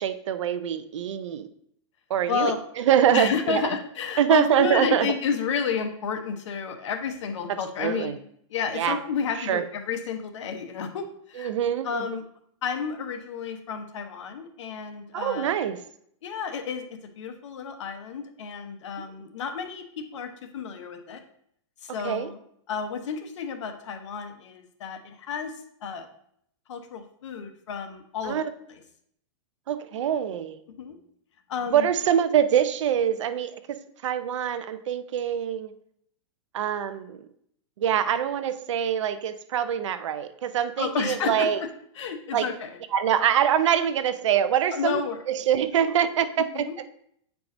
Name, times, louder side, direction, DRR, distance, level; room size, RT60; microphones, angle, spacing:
voice 1, 0.0-1.5 2.1-3.6 4.2-5.1 7.8-8.2 8.7-9.0 9.5-9.6 11.4-12.2 15.1-15.8 22.0-22.3 28.2-28.5 29.7-30.6 31.7-35.7 36.5-37.2 37.8-41.6 42.3-42.5 42.9-45.0 45.3-46.6, right 9 dB, 80° right, 11 dB, 0.6 m, -24 dB
voice 2, 3.1-8.2 8.5-11.5 11.8-12.2 12.6-15.6 16.2-16.9 17.2-21.2 21.8-22.4 22.7-25.5 25.8-26.1 26.7-28.4 28.7-28.8 30.8-31.0 31.5-31.9 40.8-41.7 41.9-42.8 44.7-45.2 46.5-46.7, left 6 dB, 75° left, 6 dB, 0.9 m, -31 dB
8.3 x 4.6 x 2.6 m, 0.69 s
supercardioid pair, 165°, 15 cm